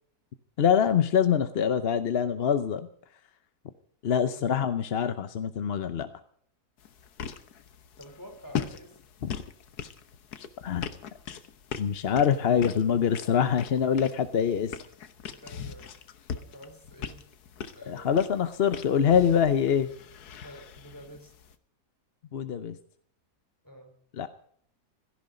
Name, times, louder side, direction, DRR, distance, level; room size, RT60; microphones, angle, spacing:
voice 1, 0.6-2.9 4.0-6.1 9.2-9.3 10.6-10.9 11.8-14.8 17.9-19.9 22.3-22.8 24.1-24.3, left 8 dB, 50° left, 11 dB, 0.8 m, -24 dB
sound 1, 6.8-21.5, left 7 dB, 75° left, 1.6 m, -40 dB
voice 2, 8.0-9.0 15.3-15.9 16.3-17.3 17.7-18.2 20.4-21.3 23.6-24.0, equal, 10° left, 4 dB, 3.9 m, -48 dB
16.5 x 14.5 x 5.1 m, 0.62 s
omnidirectional pair, 1.7 m